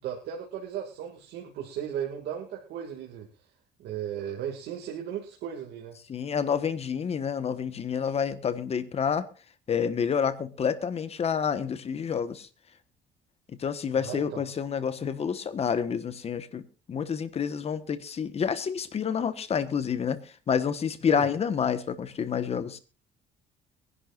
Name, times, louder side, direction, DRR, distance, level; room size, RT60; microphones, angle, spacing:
voice 1, 0.0-3.3 3.8-6.0 13.9-14.4 21.1-21.3, right 9 dB, 80° right, 2.3 m, -36 dB
voice 2, 6.1-9.3 9.7-12.5 13.5-22.8, left 7 dB, 40° left, 1.2 m, -29 dB
22.5 x 11.0 x 2.5 m
cardioid pair, 110°, 17 cm